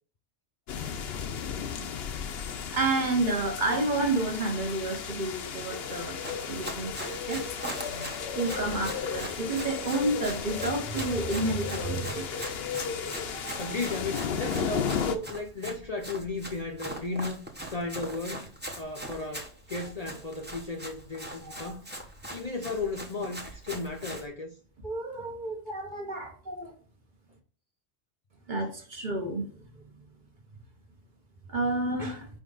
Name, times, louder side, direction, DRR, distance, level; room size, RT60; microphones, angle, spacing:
sound 1, 0.7-15.2, left 7 dB, 65° left, 0.9 m, -34 dB
voice 1, 2.7-6.2 6.5-7.5 7.8-8.1 8.4-12.7 13.2-13.8 21.2-21.7 24.8-26.7 28.5-29.5 31.5-32.3, right 2 dB, 45° right, 1.3 m, -30 dB
Run, 6.0-24.3, right 1 dB, 10° right, 0.9 m, -41 dB
voice 2, 13.6-17.4 17.7-18.5 18.8-22.0 22.3-24.5, left 3 dB, 40° left, 0.6 m, -35 dB
5.2 x 5.1 x 3.9 m
omnidirectional pair, 1.2 m